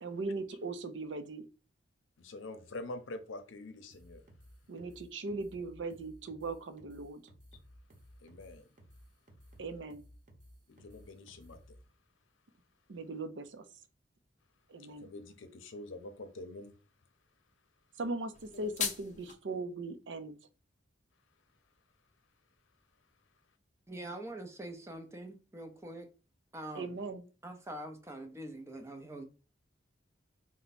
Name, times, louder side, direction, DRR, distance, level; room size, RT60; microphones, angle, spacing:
voice 1, 0.0-1.4 4.7-7.2 9.6-10.0 12.9-13.6 14.7-15.1 18.0-20.4 26.7-27.2, right 3 dB, 70° right, 0.5 m, -39 dB
voice 2, 2.2-4.2 8.2-8.7 10.7-11.8 14.8-16.7, left 2 dB, 85° left, 0.6 m, -46 dB
sound 1, 3.9-11.8, equal, 40° right, 0.9 m, -57 dB
sound 2, 18.3-19.3, left 6 dB, 40° left, 0.6 m, -37 dB
voice 3, 23.9-26.1 26.5-27.0 27.4-29.2, right 1 dB, 15° right, 0.5 m, -44 dB
4.4 x 2.1 x 4.0 m
head